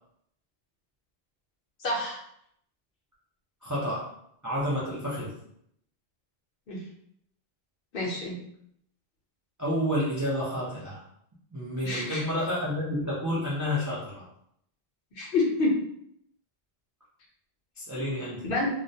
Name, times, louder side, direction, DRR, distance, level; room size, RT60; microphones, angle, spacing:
voice 1, 1.8-2.2 6.7-6.8 7.9-8.4 11.8-12.2 15.2-15.8 18.4-18.7, left 2 dB, 60° left, -3 dB, 0.8 m, -27 dB
voice 2, 3.6-4.1 4.4-5.4 9.6-11.0 11.5-14.2 17.8-18.5, equal, 30° right, -7 dB, 0.3 m, -30 dB
2.2 x 2.1 x 2.6 m, 0.71 s
omnidirectional pair, 1.1 m